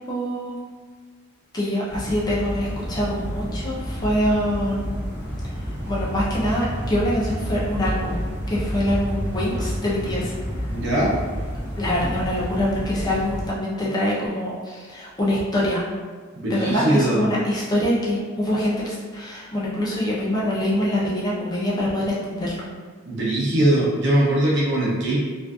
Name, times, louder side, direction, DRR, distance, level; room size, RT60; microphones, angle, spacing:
voice 1, 0.1-0.5 1.5-5.1 5.9-8.2 8.5-10.3 11.8-15.8 16.5-22.6, left 1 dB, 20° left, -7 dB, 0.5 m, -24 dB
sound 1, 1.9-13.5, equal, 10° right, 1.0 m, -29 dB
voice 2, 10.7-11.1 16.3-17.3 23.1-25.2, right 1 dB, 60° right, -6 dB, 0.6 m, -21 dB
2.5 x 2.4 x 2.3 m, 1.5 s
head